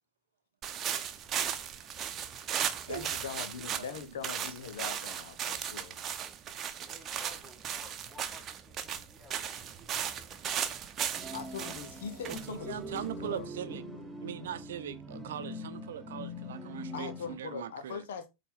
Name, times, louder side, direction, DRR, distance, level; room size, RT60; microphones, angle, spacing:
sound 1, 0.6-13.4, right 8 dB, 30° right, 0.9 m, -37 dB
voice 1, 2.8-6.0 11.3-13.5 16.9-18.3, left 6 dB, 60° left, 1.1 m, -41 dB
voice 2, 3.8-4.3 12.2-13.8 14.2-18.0, right 10 dB, 60° right, 0.7 m, -41 dB
voice 3, 6.8-10.4, left 2 dB, 15° left, 3.1 m, -57 dB
sound 2, 11.1-17.4, left 1 dB, 5° right, 1.4 m, -43 dB
8.4 x 3.8 x 3.9 m
figure-of-eight pair, 90°, 0 cm